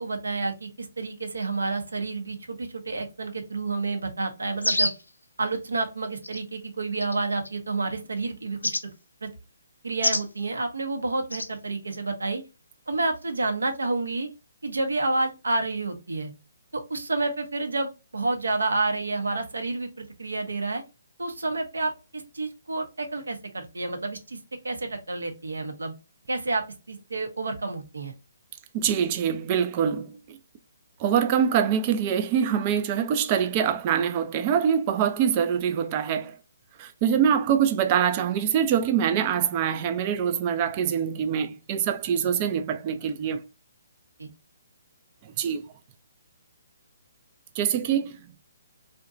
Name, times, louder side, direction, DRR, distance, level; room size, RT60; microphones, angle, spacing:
voice 1, 0.0-4.9 5.4-8.7 9.2-9.3 9.8-12.4 12.9-14.3 14.6-16.3 16.7-20.8 21.2-24.4 24.6-25.9 26.3-28.1 44.2-44.3, right 3 dB, 75° right, 0.7 m, -29 dB
sound 1, 4.6-5.1 6.2-6.4 7.0-7.5 8.6-8.8 10.0-10.3 11.3-11.5, left 2 dB, 85° left, 0.4 m, -26 dB
voice 2, 28.7-30.4 31.0-36.4 36.8-43.4 45.2-45.7 47.6-48.3, right 8 dB, 30° right, 0.3 m, -24 dB
2.7 x 2.2 x 2.4 m
figure-of-eight pair, 135°, 0 cm